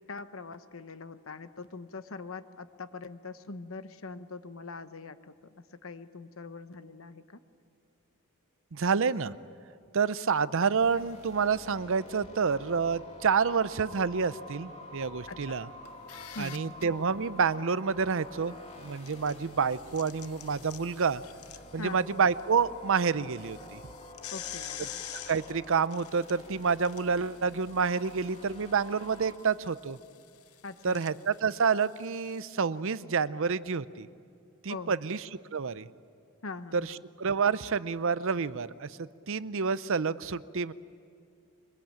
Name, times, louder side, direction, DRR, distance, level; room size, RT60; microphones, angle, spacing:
voice 1, 0.0-7.4 15.3-15.6 16.3-16.8 21.8-22.3 24.3-24.8 30.6-31.1 34.7-35.0 36.4-37.0, left 3 dB, 65° left, 11 dB, 1.0 m, -43 dB
voice 2, 8.7-9.3 9.9-15.7 16.4-18.6 18.8-21.2 21.7-23.8 25.3-30.0 30.8-34.1 34.6-35.2 35.5-35.9 37.2-40.7, right 5 dB, 60° right, 16 dB, 0.6 m, -28 dB
sound 1, 10.8-29.3, left 1 dB, 30° left, 2.9 m, -49 dB
sound 2, 15.9-16.8 18.8-22.4 22.8-22.9 23.3-32.5, left 11 dB, 90° left, 1.0 m, -47 dB
24.0 x 22.0 x 8.9 m, 2.4 s
head